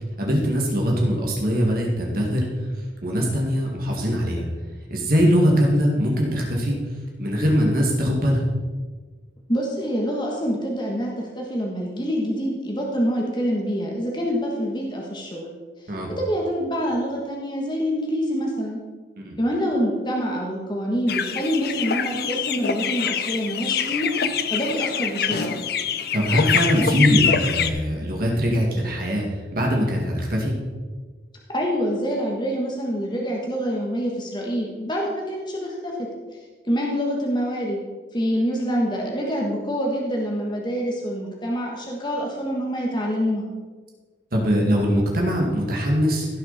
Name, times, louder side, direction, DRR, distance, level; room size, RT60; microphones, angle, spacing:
voice 1, 0.2-2.4 3.0-4.5 4.9-6.8 7.2-8.4 15.9-16.1 19.2-19.4 26.1-29.2 29.5-30.5 44.3-46.3, equal, 55° right, -1 dB, 2.1 m, -21 dB
voice 2, 9.5-15.5 16.2-18.8 19.4-24.1 24.5-25.6 31.5-36.1 36.7-37.8 38.1-43.4, equal, 25° left, -1 dB, 1.5 m, -26 dB
sound 1, 21.1-27.7, left 7 dB, 60° left, 0.6 m, -25 dB
16.0 x 6.5 x 4.2 m, 1.4 s
head